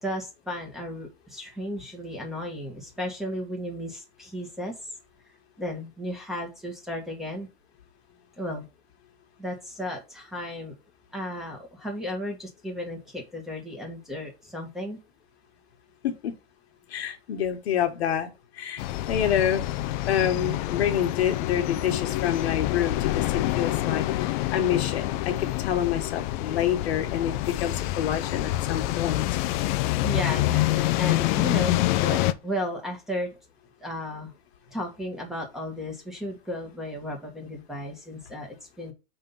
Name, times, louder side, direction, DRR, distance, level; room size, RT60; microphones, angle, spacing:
voice 1, 0.0-4.7 5.6-7.5 8.4-8.7 9.4-10.7 11.1-15.0 30.0-33.4 33.8-34.3 34.7-38.9, equal, ahead, 1.6 m, -34 dB
voice 2, 16.9-19.6 20.1-29.3, left 9 dB, 80° left, 1.6 m, -27 dB
sound 1, 18.8-32.3, left 16 dB, 50° left, 0.6 m, -27 dB
5.5 x 3.8 x 5.4 m
supercardioid pair, 145°, 31 cm